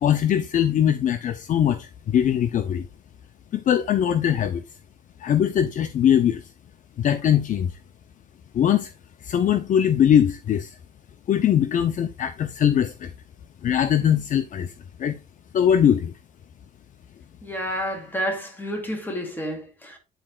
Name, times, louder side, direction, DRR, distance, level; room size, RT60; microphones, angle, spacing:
voice 1, 0.0-2.9 3.5-4.6 5.2-6.5 7.0-7.8 8.5-8.9 9.2-10.8 11.3-13.1 13.6-14.7 15.0-15.2 15.5-16.1, left 9 dB, 50° left, 0.7 m, -21 dB
voice 2, 17.4-20.0, equal, 10° left, 2.7 m, -30 dB
10.0 x 4.3 x 2.4 m
cardioid pair, 110°, 17 cm